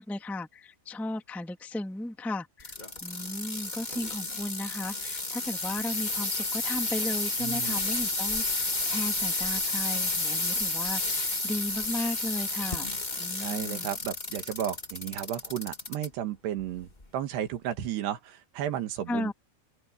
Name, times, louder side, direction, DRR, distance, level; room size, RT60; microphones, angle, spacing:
voice 1, 0.0-2.7 3.0-12.9 13.2-13.9 19.1-19.3, left 1 dB, ahead, 1.9 m, -35 dB
sound 1, 2.6-16.1 16.6-17.0 17.7-17.8, left 2 dB, 35° left, 0.7 m, -31 dB
voice 2, 7.4-7.8 13.4-19.3, right 10 dB, 75° right, 3.7 m, -33 dB
open air
omnidirectional pair, 4.9 m